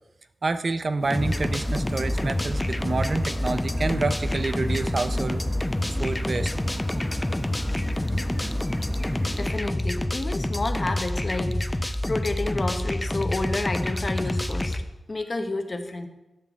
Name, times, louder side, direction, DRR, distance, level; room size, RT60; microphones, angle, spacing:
voice 1, 0.4-5.4 5.7-6.5, right 3 dB, 50° right, 10 dB, 0.4 m, -28 dB
sound 1, 1.0-9.6, equal, ahead, 1.0 m, -36 dB
sound 2, 1.1-14.8, left 1 dB, 15° left, 0.5 m, -27 dB
voice 2, 9.4-14.8 15.1-16.1, left 2 dB, 40° left, 6 dB, 0.9 m, -30 dB
10.5 x 3.6 x 7.0 m, 1.0 s
wide cardioid pair, 85°, 0 cm